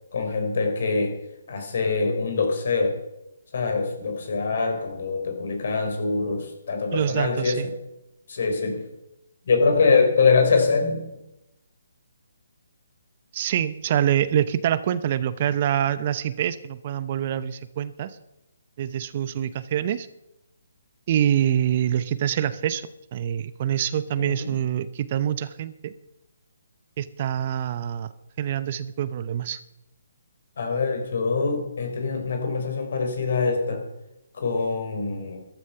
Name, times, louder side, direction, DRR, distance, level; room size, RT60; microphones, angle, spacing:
voice 1, 0.1-1.2 1.5-3.0 3.5-7.7 8.3-8.9 9.5-11.0 24.2-24.6 30.6-33.9 34.3-35.4, left 4 dB, 60° left, 5 dB, 4.2 m, -24 dB
voice 2, 6.9-7.7 13.3-18.1 18.8-20.1 21.1-22.8 23.1-25.9 27.0-28.1 28.4-29.6, right 10 dB, 40° right, 15 dB, 0.7 m, -25 dB
14.0 x 12.5 x 5.6 m, 0.90 s
figure-of-eight pair, 145°, 0 cm